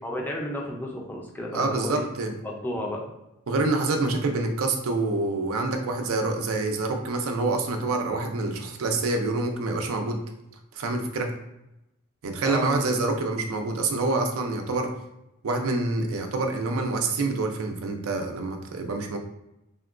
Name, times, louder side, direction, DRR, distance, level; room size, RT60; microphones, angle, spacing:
voice 1, 0.0-2.0 2.4-3.0 12.4-12.9, left 1 dB, 10° left, -1 dB, 0.4 m, -32 dB
voice 2, 1.5-2.3 3.5-10.2 10.7-11.4 12.2-14.9 15.4-19.2, right 3 dB, 70° right, 4 dB, 0.4 m, -26 dB
3.5 x 2.2 x 2.4 m, 0.90 s
head